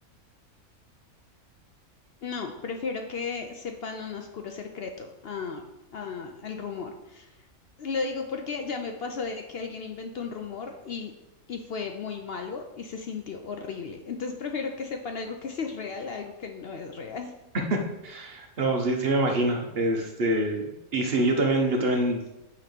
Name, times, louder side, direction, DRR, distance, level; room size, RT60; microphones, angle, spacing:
voice 1, 2.2-5.6 5.9-7.4 7.8-11.1 11.5-17.3, left 5 dB, 65° left, 4 dB, 0.6 m, -35 dB
voice 2, 17.7-22.2, right 2 dB, 50° right, 2 dB, 0.9 m, -25 dB
8.5 x 3.1 x 5.1 m, 0.95 s
omnidirectional pair, 1.5 m